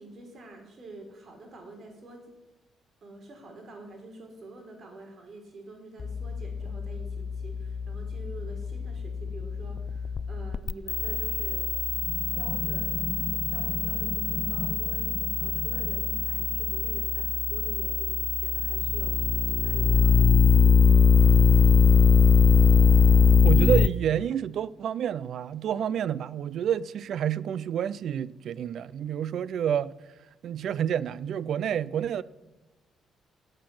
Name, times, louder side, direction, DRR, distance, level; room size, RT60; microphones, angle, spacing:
voice 1, 0.0-2.2 3.0-11.7 12.3-13.0 13.5-20.9, right 2 dB, 50° right, 4.1 m, -46 dB
sound 1, 6.0-23.9, left 6 dB, 40° left, 0.5 m, -22 dB
voice 2, 23.4-29.9 30.4-32.2, right 9 dB, 70° right, 0.4 m, -29 dB
12.0 x 6.7 x 9.6 m
cardioid pair, 90°, 0 cm